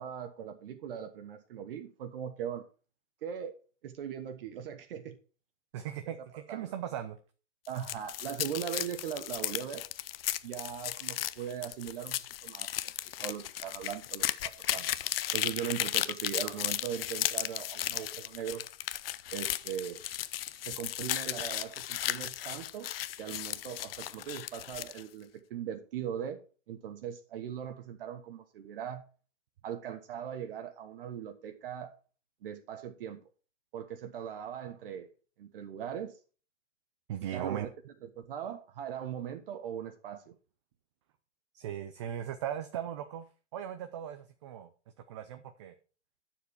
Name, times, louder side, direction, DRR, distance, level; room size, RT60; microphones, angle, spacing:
voice 1, 0.0-2.6 3.2-3.5 3.8-5.2 6.1-6.2 6.5-6.7 7.7-9.8 10.4-12.9 13.2-14.9 15.3-18.6 19.3-20.0 20.6-22.9 23.2-26.4 26.7-29.0 29.6-31.9 32.4-33.2 33.7-35.1 35.4-36.1 37.3-37.7 38.2-40.3, right 9 dB, 45° right, 1.2 m, -39 dB
voice 2, 5.7-7.2 37.1-37.7 41.5-43.3 43.5-44.7 45.1-45.7, right 10 dB, 25° right, 0.5 m, -38 dB
sound 1, 7.6-25.0, left 12 dB, 50° left, 0.6 m, -35 dB
9.4 x 7.1 x 4.6 m
hypercardioid pair, 160°, 37 cm